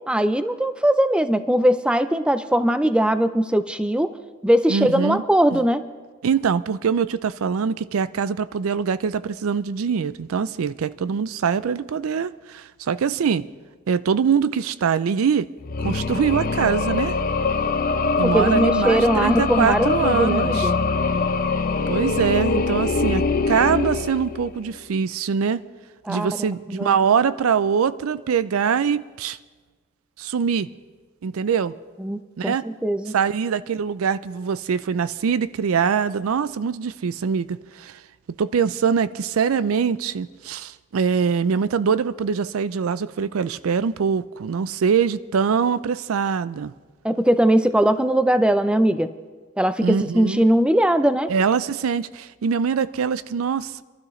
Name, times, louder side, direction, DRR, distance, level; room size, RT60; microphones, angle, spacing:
voice 1, 0.1-4.1 4.4-5.8 18.2-20.8 26.1-27.0 32.0-33.1 47.0-49.1 49.6-51.3, right 1 dB, 5° right, 0.4 m, -20 dB
voice 2, 4.7-5.2 5.5-5.6 6.2-13.5 13.9-15.5 15.8-17.2 18.2-20.7 21.9-25.6 26.1-29.4 30.2-30.7 31.2-31.7 32.4-32.6 33.1-38.0 38.4-46.7 49.8-50.5 51.3-53.8, right 6 dB, 90° right, 0.4 m, -23 dB
sound 1, 15.6-24.7, left 4 dB, 45° left, 0.7 m, -23 dB
25.5 x 12.5 x 3.2 m
head